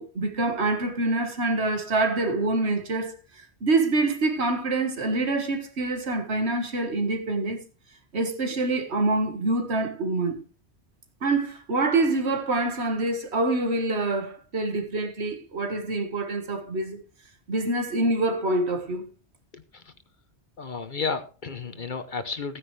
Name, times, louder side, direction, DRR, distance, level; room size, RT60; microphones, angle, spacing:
voice 1, 0.0-7.6 8.1-10.4 11.2-17.0 17.5-19.0, right 2 dB, 75° right, 2.0 m, -26 dB
voice 2, 19.5-19.9 20.6-22.6, left 4 dB, 50° left, 1.0 m, -32 dB
15.5 x 9.7 x 3.3 m
omnidirectional pair, 1.1 m